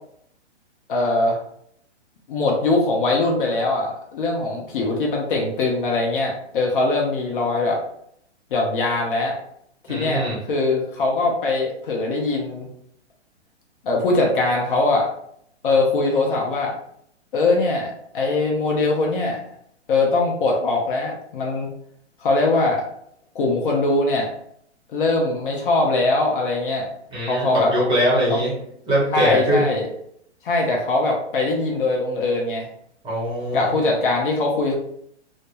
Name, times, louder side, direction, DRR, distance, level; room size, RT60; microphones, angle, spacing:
voice 1, 0.9-1.4 2.3-7.8 8.5-9.4 9.9-12.7 13.8-15.1 15.6-16.7 17.3-19.4 19.9-21.7 22.2-22.8 23.3-24.3 24.9-26.9 27.3-27.7 28.3-28.4 29.1-29.9 30.4-32.7 33.5-34.7, left 2 dB, 50° left, 0 dB, 0.6 m, -21 dB
voice 2, 9.9-10.4 27.1-28.6 28.9-29.7 33.0-33.7, equal, 15° right, -5 dB, 0.9 m, -22 dB
2.1 x 2.1 x 2.9 m, 0.70 s
hypercardioid pair, 130°, 35 cm